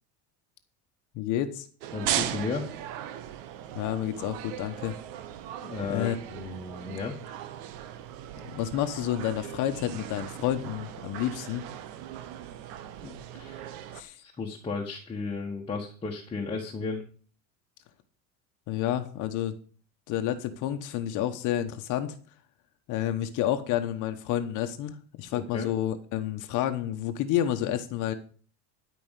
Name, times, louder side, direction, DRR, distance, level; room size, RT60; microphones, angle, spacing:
voice 1, 1.1-1.7 3.7-4.9 5.9-6.2 8.4-11.7 13.9-14.2 18.7-19.5 20.1-22.2 22.9-28.1, left 11 dB, 50° left, 8 dB, 1.2 m, -30 dB
sound 1, 1.8-14.0, right 11 dB, 70° right, 1.2 m, -38 dB
voice 2, 1.9-2.7 5.6-7.1 13.0-13.6 14.2-17.0 25.3-25.7, left 4 dB, 15° left, 0 dB, 1.4 m, -34 dB
12.5 x 5.2 x 8.2 m, 0.43 s
cardioid pair, 155°, 38 cm